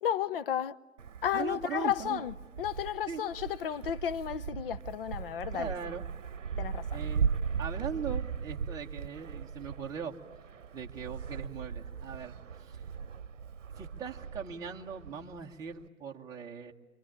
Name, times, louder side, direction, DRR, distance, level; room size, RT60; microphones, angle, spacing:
voice 1, 0.0-0.8 1.2-5.7 6.6-7.0, left 10 dB, 45° left, 0.9 m, -33 dB
Wind, 1.0-15.9, right 6 dB, 70° right, 0.9 m, -38 dB
voice 2, 1.3-2.2 3.1-3.2 5.5-6.0 6.9-7.3 7.6-10.1 10.7-12.8 13.8-16.7, right 6 dB, 10° right, 1.1 m, -40 dB
26.5 x 23.5 x 8.7 m
figure-of-eight pair, 130°, 39 cm